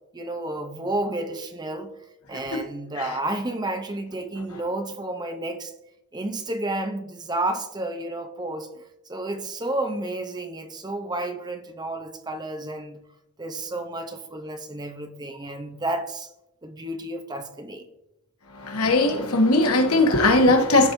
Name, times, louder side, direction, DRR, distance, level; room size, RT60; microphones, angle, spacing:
voice 1, 0.1-1.9 2.3-5.7 6.1-8.7 9.1-13.0 13.4-16.3 16.6-17.9, right 2 dB, 20° right, 0.7 m, -31 dB
voice 2, 18.6-20.9, left 2 dB, 90° left, 1.3 m, -19 dB
14.5 x 5.3 x 2.7 m
head